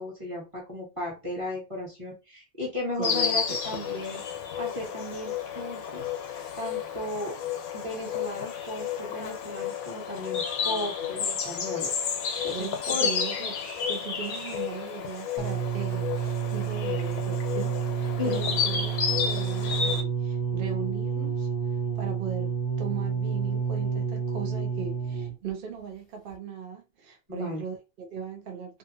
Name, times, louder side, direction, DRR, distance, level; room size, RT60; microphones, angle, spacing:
voice 1, 0.0-4.2 4.5-6.1 6.6-7.4 7.7-11.9 12.2-13.1 18.2-18.6 27.3-27.6, left 1 dB, 25° right, 1.1 m, -35 dB
Insect, 3.0-20.0, left 7 dB, 85° left, 1.0 m, -31 dB
voice 2, 3.0-3.4 3.7-4.1 10.6-11.2 12.5-13.5 13.9-21.5 22.0-28.8, right 7 dB, 55° right, 0.7 m, -39 dB
sound 1, 15.4-25.5 26.3-26.4, right 7 dB, 50° left, 0.6 m, -29 dB
2.7 x 2.4 x 2.6 m
omnidirectional pair, 1.5 m